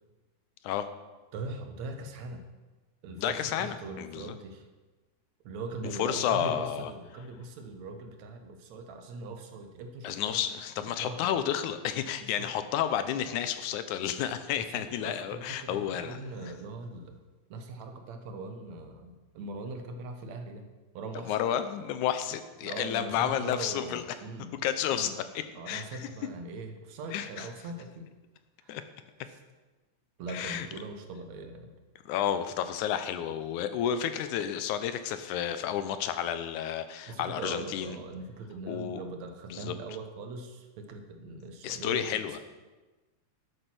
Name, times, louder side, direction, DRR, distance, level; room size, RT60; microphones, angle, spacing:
voice 1, 1.3-2.5 3.0-4.6 5.5-10.4 10.9-11.3 12.4-12.5 14.7-17.2 17.5-20.6 20.9-21.4 22.6-24.5 24.9-25.1 25.6-28.1 28.6-28.8 30.2-31.7 37.1-42.4, right 3 dB, 70° right, 6 dB, 2.4 m, -41 dB
voice 2, 3.2-4.4 5.9-6.9 10.0-16.5 21.3-24.0 24.5-26.1 27.1-27.5 28.7-28.8 30.3-30.7 32.1-38.0 38.7-39.0 39.5-39.8 41.6-42.4, left 10 dB, 90° left, 10 dB, 2.3 m, -31 dB
12.5 x 7.9 x 6.1 m, 1.2 s
omnidirectional pair, 3.4 m